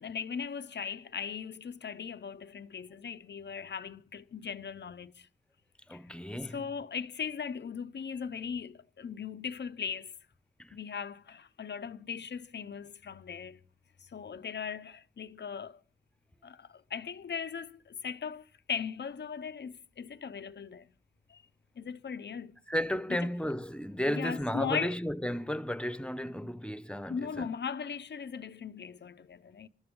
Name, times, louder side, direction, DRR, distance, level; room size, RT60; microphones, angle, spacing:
voice 1, 0.0-5.3 5.9-6.0 6.5-10.1 10.7-13.6 14.1-15.8 16.4-20.9 21.3-21.4 21.8-22.5 24.1-24.9 27.1-29.7, left 6 dB, 85° left, 0.7 m, -38 dB
voice 2, 5.9-6.7 10.6-10.8 22.7-27.5, equal, 5° left, 1.0 m, -34 dB
27.5 x 13.0 x 3.7 m
wide cardioid pair, 70°, 18 cm